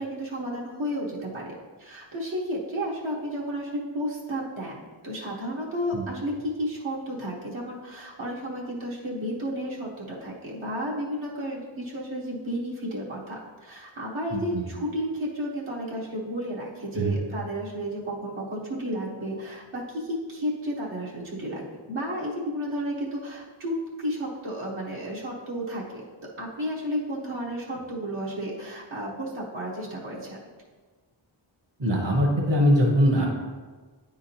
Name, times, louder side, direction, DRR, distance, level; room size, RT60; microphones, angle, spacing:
voice 1, 0.0-26.1 26.4-30.4, equal, 80° right, -6 dB, 1.3 m, -32 dB
voice 2, 14.3-14.7 16.9-17.2 31.8-33.3, equal, 60° right, -2 dB, 1.4 m, -22 dB
9.4 x 3.7 x 2.9 m, 1.4 s
wide cardioid pair, 45°, 47 cm